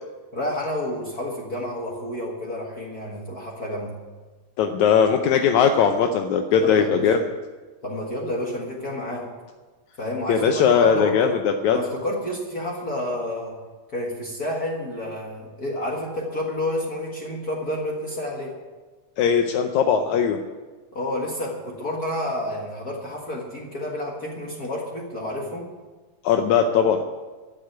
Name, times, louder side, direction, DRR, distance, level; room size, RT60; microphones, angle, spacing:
voice 1, 0.3-3.9 6.6-7.1 7.8-9.3 10.0-11.4 11.7-13.6 13.9-18.6 20.9-25.7, left 1 dB, 35° left, -3 dB, 1.8 m, -30 dB
voice 2, 4.6-7.2 10.3-11.8 19.2-20.4 26.2-27.0, left 7 dB, 75° left, 5 dB, 2.0 m, -19 dB
13.0 x 7.6 x 8.9 m, 1.3 s
omnidirectional pair, 3.5 m